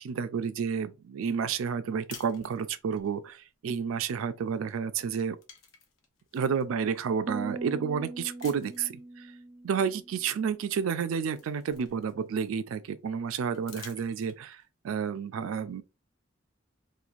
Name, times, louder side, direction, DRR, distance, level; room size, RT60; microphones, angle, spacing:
voice 1, 0.0-5.4 6.3-9.3 9.6-15.8, right 6 dB, 80° right, 0.3 m, -31 dB
sound 1, 2.1-3.1 4.5-4.7 5.0-6.6 7.3-7.4 8.4-9.0 10.4-10.5 10.9-12.5 13.5-14.6, left 6 dB, 75° left, 0.7 m, -50 dB
sound 2, 7.3-10.7, right 2 dB, 15° right, 0.4 m, -41 dB
3.1 x 2.4 x 2.4 m
head